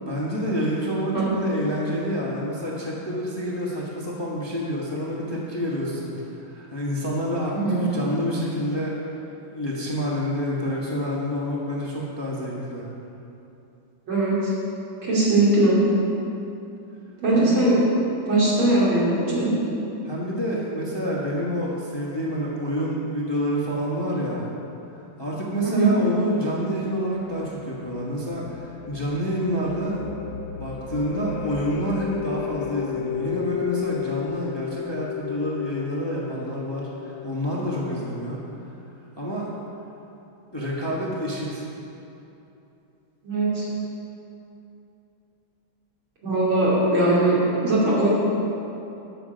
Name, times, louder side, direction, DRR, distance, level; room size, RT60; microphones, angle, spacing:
voice 1, 0.0-8.9 9.4-12.9 17.3-17.6 20.0-24.5 25.2-30.0 30.5-38.4 39.2-39.5 40.5-41.7, equal, 15° left, -5 dB, 1.0 m, -28 dB
voice 2, 7.5-7.8 14.1-14.5 15.0-15.8 17.2-17.8 18.2-19.5 25.6-25.9 43.2-43.7 46.2-48.1, right 2 dB, 85° right, -8 dB, 3.5 m, -20 dB
sound 1, 27.0-37.3, left 8 dB, 85° left, 1.5 m, -34 dB
13.5 x 5.9 x 5.1 m, 2.9 s
omnidirectional pair, 2.2 m